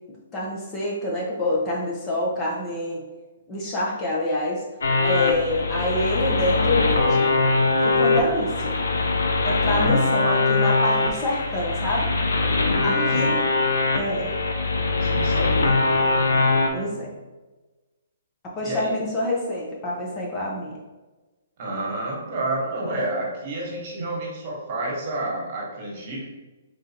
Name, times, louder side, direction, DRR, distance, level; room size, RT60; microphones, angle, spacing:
voice 1, 0.3-3.1 3.5-4.6 5.0-7.5 7.8-8.8 9.4-12.1 12.8-13.4 13.9-14.3 16.7-17.1 18.6-20.8, left 1 dB, 20° left, -3 dB, 0.7 m, -26 dB
sound 1, 4.8-16.7, left 3 dB, 85° left, 0.6 m, -22 dB
voice 2, 9.6-10.0 12.5-13.3 14.9-15.8 18.6-18.9 21.6-26.2, right 2 dB, 40° right, -3 dB, 1.3 m, -30 dB
3.8 x 3.5 x 2.8 m, 1.2 s
hypercardioid pair, 155°, 0 cm